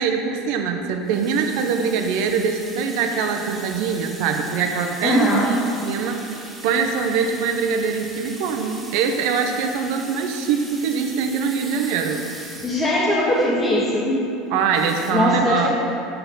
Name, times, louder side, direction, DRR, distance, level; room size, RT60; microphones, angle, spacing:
voice 1, 0.0-12.2 14.5-15.7, right 6 dB, 65° right, 4 dB, 0.7 m, -23 dB
sound 1, 1.0-13.4 14.7-15.1, right 2 dB, 15° right, 1.5 m, -39 dB
voice 2, 5.0-5.4 12.6-14.2 15.1-15.7, left 1 dB, 20° left, -9 dB, 1.5 m, -20 dB
6.8 x 6.0 x 3.9 m, 2.7 s
hypercardioid pair, 80°, 0 cm